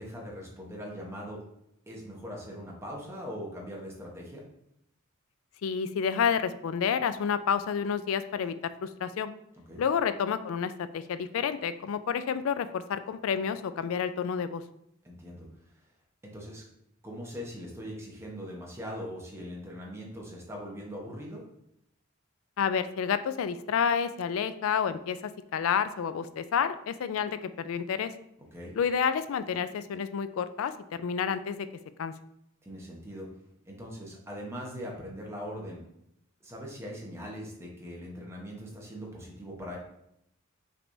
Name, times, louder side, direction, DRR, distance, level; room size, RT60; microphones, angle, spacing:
voice 1, 0.0-1.4 1.9-4.4 9.7-9.8 15.0-15.5 16.2-16.6 17.0-21.4 28.5-28.7 32.6-33.3 33.6-35.8 36.4-39.8, equal, 15° right, -2 dB, 0.9 m, -41 dB
voice 2, 5.6-8.5 8.8-9.3 9.8-14.6 22.6-28.1 28.7-30.7 31.0-31.7 32.0-32.1, left 7 dB, 75° left, 12 dB, 0.3 m, -29 dB
5.8 x 3.4 x 2.6 m, 0.79 s
head